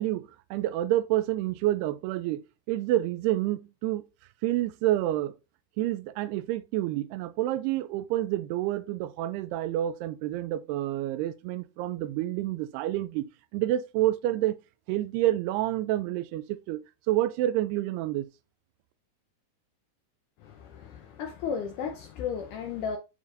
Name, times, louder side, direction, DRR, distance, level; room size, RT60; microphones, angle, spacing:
voice 1, 0.0-2.4 2.7-4.0 4.4-5.3 5.8-13.3 13.5-14.6 14.9-16.8 17.1-18.3, right 14 dB, 85° right, 2.6 m, -28 dB
voice 2, 20.4-23.0, left 7 dB, 90° left, 1.7 m, -34 dB
7.3 x 6.9 x 2.5 m
omnidirectional pair, 4.6 m